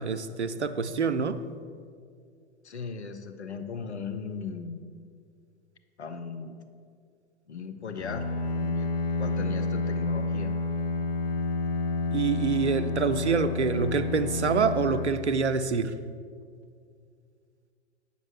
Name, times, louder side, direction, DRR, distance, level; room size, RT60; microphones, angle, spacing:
voice 1, 0.0-1.4 12.1-16.0, right 5 dB, 85° right, 0.5 m, -26 dB
voice 2, 2.6-4.8 6.0-6.6 7.5-8.3 8.6-8.9 9.2-10.5, left 5 dB, 80° left, 0.7 m, -37 dB
Bowed string instrument, 7.9-15.9, left 3 dB, 30° left, 0.6 m, -30 dB
8.3 x 5.3 x 6.3 m
figure-of-eight pair, 100°, 33 cm